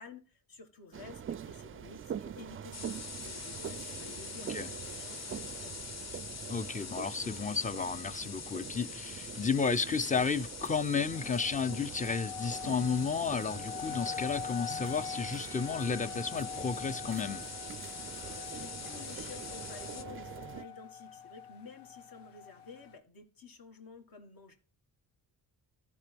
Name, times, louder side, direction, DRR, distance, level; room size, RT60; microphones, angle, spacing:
voice 1, 0.0-5.9 17.9-24.6, left 4 dB, 60° left, 1.9 m, -52 dB
sound 1, 0.9-20.6, right 8 dB, 35° right, 0.4 m, -45 dB
sound 2, 2.7-20.0, left 5 dB, 40° left, 0.9 m, -44 dB
voice 2, 6.5-17.4, left 5 dB, 20° left, 0.5 m, -32 dB
sound 3, 11.1-23.0, left 8 dB, 85° left, 1.0 m, -44 dB
14.5 x 5.2 x 3.5 m
cardioid pair, 85°, 40 cm